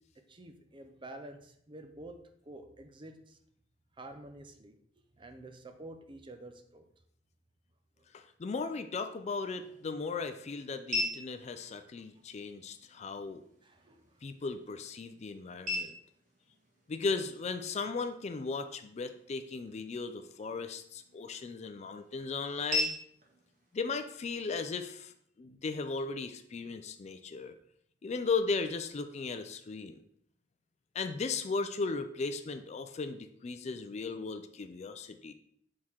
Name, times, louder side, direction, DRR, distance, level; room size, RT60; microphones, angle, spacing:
voice 1, 0.2-3.4 4.0-4.8 5.2-6.9 8.0-8.1 13.0-13.1 13.6-14.2, right 2 dB, 25° right, 7 dB, 0.6 m, -49 dB
voice 2, 8.1-13.4 14.2-15.9 16.9-22.9 23.7-25.1 25.4-27.5 28.0-30.0 30.9-35.3, left 4 dB, 35° left, 9 dB, 0.4 m, -36 dB
sound 1, 9.1-25.1, left 2 dB, 45° right, 1.6 m, -42 dB
6.4 x 3.6 x 4.4 m, 0.66 s
head